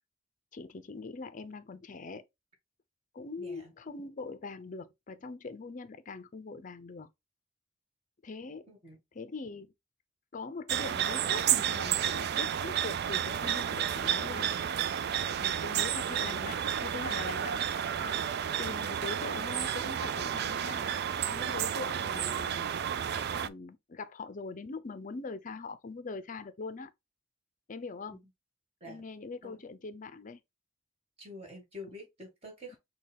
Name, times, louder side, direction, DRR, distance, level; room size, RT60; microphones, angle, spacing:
voice 1, 0.5-2.2 3.1-7.1 8.2-8.7 9.1-9.7 10.3-14.6 15.3-17.7 18.0-18.2 18.6-20.9 21.3-26.9 27.7-28.2 28.8-30.4, left 3 dB, 40° left, 0.5 m, -42 dB
voice 2, 3.4-3.7 8.7-9.0 28.1-28.2 28.8-29.0 29.4-29.6 31.2-32.8, left 1 dB, 35° right, 2.3 m, -47 dB
sound 1, 10.7-23.5, right 9 dB, 55° right, 0.3 m, -31 dB
6.4 x 2.3 x 3.5 m
head